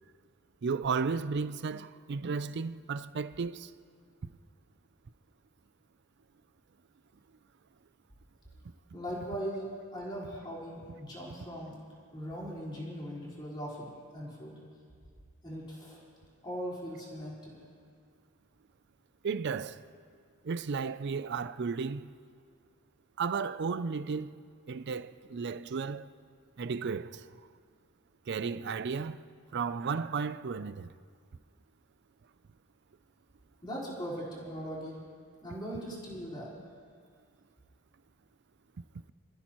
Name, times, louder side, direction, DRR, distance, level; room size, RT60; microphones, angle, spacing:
voice 1, 0.6-3.7 19.2-19.8 20.4-22.1 23.2-24.4 24.7-26.1 26.6-27.3 28.3-29.2 29.5-30.9, right 5 dB, 50° right, 0.4 m, -34 dB
voice 2, 8.9-11.8 12.1-14.5 15.4-16.0 16.4-17.6 33.6-35.0 35.4-36.6, equal, 20° left, 4.4 m, -39 dB
27.5 x 14.5 x 3.0 m
head